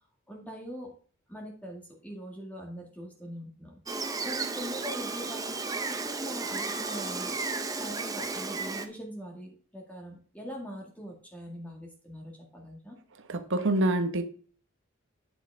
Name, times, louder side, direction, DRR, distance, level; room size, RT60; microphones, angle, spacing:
voice 1, 0.3-0.9 1.3-3.8 4.2-5.5 5.9-7.3 7.8-13.0, equal, 5° left, 0 dB, 2.0 m, -42 dB
Gull seagull, 3.9-8.9, right 3 dB, 15° right, 0.9 m, -33 dB
voice 2, 13.3-14.2, right 1 dB, 60° right, 7 dB, 1.2 m, -26 dB
9.4 x 7.5 x 3.6 m, 0.43 s
head